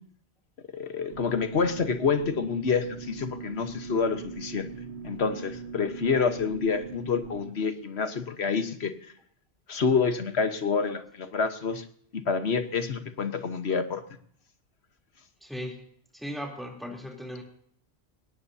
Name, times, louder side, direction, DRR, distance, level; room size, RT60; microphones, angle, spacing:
voice 1, 0.7-4.7 5.0-8.9 9.7-11.8 12.1-14.0, left 5 dB, 80° left, 8 dB, 1.5 m, -28 dB
sound 1, 1.1-7.5, right 5 dB, 80° right, 1.4 m, -41 dB
voice 2, 15.4-15.8 16.1-17.4, equal, ahead, 0 dB, 3.3 m, -37 dB
21.0 x 18.0 x 2.8 m, 0.63 s
omnidirectional pair, 1.1 m